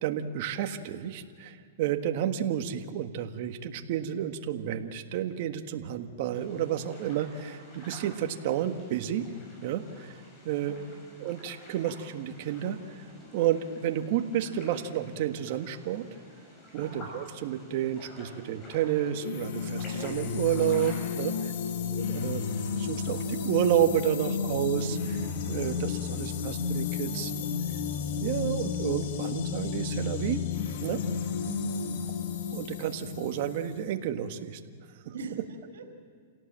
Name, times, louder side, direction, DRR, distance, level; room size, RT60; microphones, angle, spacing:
voice 1, 0.0-9.3 9.6-10.2 10.4-10.8 11.2-16.1 16.7-21.4 21.9-27.3 28.2-30.4 30.8-31.2 32.5-34.6, right 10 dB, 50° right, 7 dB, 1.6 m, -31 dB
sound 1, 6.3-21.3, left 1 dB, 25° left, 7.1 m, -50 dB
voice 2, 10.7-11.0 16.7-17.0 21.1-21.5 27.0-27.5 31.4-32.0 35.1-35.9, right 4 dB, 85° right, 3 dB, 4.0 m, -41 dB
sound 2, 19.2-33.9, left 6 dB, 60° left, 2.4 m, -32 dB
28.0 x 17.5 x 7.6 m, 2.1 s
hypercardioid pair, 145°, 0 cm